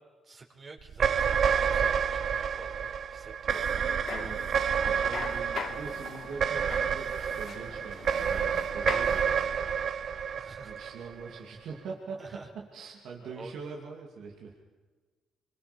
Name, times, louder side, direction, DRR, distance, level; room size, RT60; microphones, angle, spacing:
voice 1, 0.2-3.7 10.4-10.7 12.2-12.5 13.2-13.5, right 3 dB, 40° right, 1 dB, 5.0 m, -48 dB
sound 1, 0.9-11.4, right 7 dB, 55° right, 0.9 m, -29 dB
sound 2, 3.5-9.5, left 7 dB, 60° left, 1.1 m, -42 dB
voice 2, 4.1-9.6 10.6-14.6, right 5 dB, 75° right, -1 dB, 2.8 m, -43 dB
26.5 x 23.5 x 5.3 m, 1.4 s
cardioid pair, 90°, 0 cm